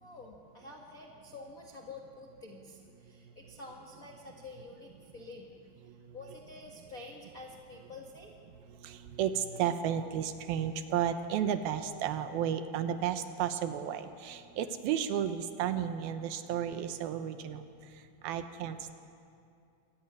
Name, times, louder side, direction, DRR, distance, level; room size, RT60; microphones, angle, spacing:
voice 1, 0.0-5.6 5.8-8.3, left 3 dB, 75° left, 0 dB, 0.8 m, -49 dB
voice 2, 8.7-18.9, right 9 dB, 75° right, 9 dB, 2.6 m, -33 dB
25.0 x 14.5 x 9.6 m, 2.5 s
omnidirectional pair, 4.6 m